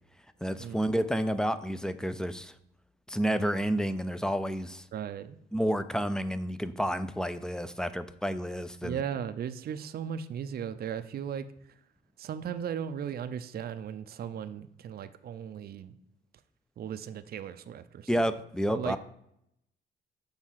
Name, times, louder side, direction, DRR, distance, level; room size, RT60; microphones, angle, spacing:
voice 1, 0.4-2.5 3.1-4.8 5.5-9.0 18.1-19.0, equal, 5° left, 12 dB, 0.4 m, -30 dB
voice 2, 4.9-5.4 8.8-11.5 12.2-15.9 16.8-18.2 18.7-19.0, right 8 dB, 50° right, 11 dB, 0.5 m, -37 dB
6.3 x 3.4 x 5.7 m, 0.77 s
cardioid pair, 90°, 20 cm